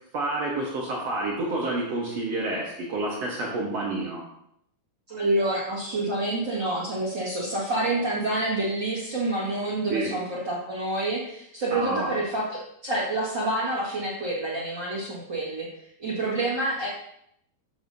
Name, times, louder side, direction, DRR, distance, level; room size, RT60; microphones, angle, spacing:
voice 1, 0.1-4.2 9.9-10.1 11.7-12.1, right 2 dB, 70° right, -3 dB, 1.5 m, -29 dB
voice 2, 5.1-15.7 16.0-16.9, right 2 dB, 40° right, -7 dB, 1.7 m, -28 dB
13.0 x 7.2 x 2.7 m, 0.74 s
omnidirectional pair, 4.9 m